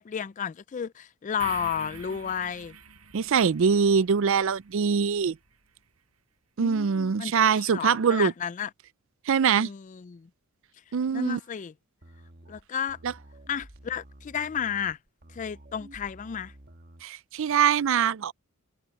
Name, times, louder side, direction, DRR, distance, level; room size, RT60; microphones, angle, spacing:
voice 1, 0.0-2.8 6.6-8.7 9.5-10.3 11.1-11.7 12.5-13.0 13.5-15.0 15.3-16.5, left 8 dB, 35° left, 0.3 m, -32 dB
sound 1, 1.4-5.5, right 5 dB, 85° right, 7.6 m, -46 dB
voice 2, 3.1-5.4 6.6-8.3 9.3-9.7 10.9-11.4 13.0-13.1 17.0-18.3, right 6 dB, 60° right, 0.4 m, -23 dB
sound 2, 12.0-17.1, right 1 dB, 45° right, 1.5 m, -51 dB
head